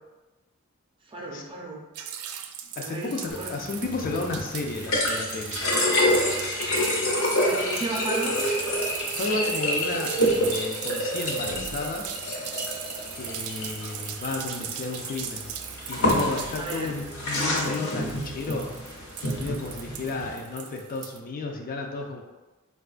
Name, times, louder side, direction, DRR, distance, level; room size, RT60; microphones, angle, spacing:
voice 1, 1.0-2.1 2.8-3.6 7.4-8.4 16.5-16.9, right 2 dB, 25° right, -2 dB, 0.5 m, -34 dB
sound 1, 1.9-21.2, right 9 dB, 90° right, 0.3 m, -39 dB
voice 2, 2.8-5.6 9.2-12.1 13.1-15.5 15.9-18.7 19.0-22.2, left 3 dB, 40° left, 2 dB, 0.3 m, -33 dB
sound 2, 3.3-20.3, left 1 dB, 75° left, 0.8 m, -28 dB
4.2 x 2.3 x 2.4 m, 1.1 s
head